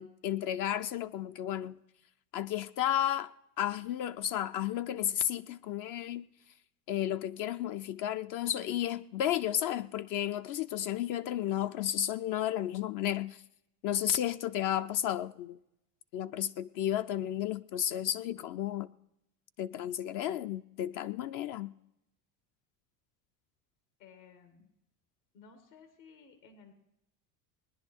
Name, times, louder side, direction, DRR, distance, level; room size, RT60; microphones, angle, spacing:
voice 1, 0.0-1.8 2.3-3.3 3.6-6.3 6.9-13.4 13.8-15.6 16.1-18.9 19.6-21.7, left 11 dB, 45° left, 0.4 m, -33 dB
voice 2, 24.0-24.7 25.3-26.7, left 5 dB, 85° left, 2.1 m, -56 dB
19.5 x 10.0 x 4.4 m
hypercardioid pair, 95°, 50 cm